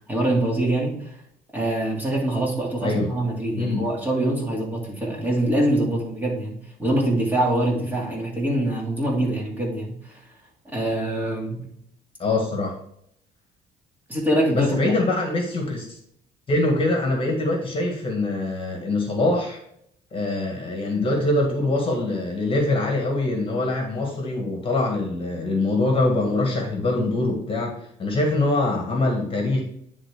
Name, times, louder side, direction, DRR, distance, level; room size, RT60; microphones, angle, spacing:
voice 1, 0.1-1.1 1.5-10.1 10.7-11.7 14.1-14.9, right 1 dB, 10° right, -3 dB, 2.3 m, -24 dB
voice 2, 3.6-3.9 12.2-12.7 14.5-16.0 16.5-19.6 20.1-29.6, left 2 dB, 30° left, 1 dB, 1.7 m, -23 dB
10.0 x 3.7 x 3.4 m, 0.71 s
cardioid pair, 110°, 17 cm